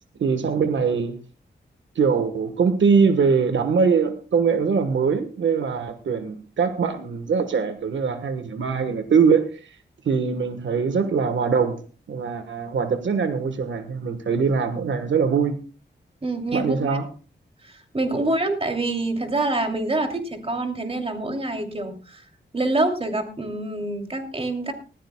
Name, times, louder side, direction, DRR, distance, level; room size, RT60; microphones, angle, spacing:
voice 1, 0.2-1.2 1.9-9.7 10.0-11.8 12.1-15.6 16.5-17.1, right 5 dB, 85° right, 9 dB, 1.3 m, -22 dB
voice 2, 16.2-17.0 17.6-22.2 22.5-24.7, right 2 dB, 30° right, 4 dB, 2.7 m, -26 dB
19.5 x 15.0 x 2.2 m, 0.34 s
wide cardioid pair, 100°, 19 cm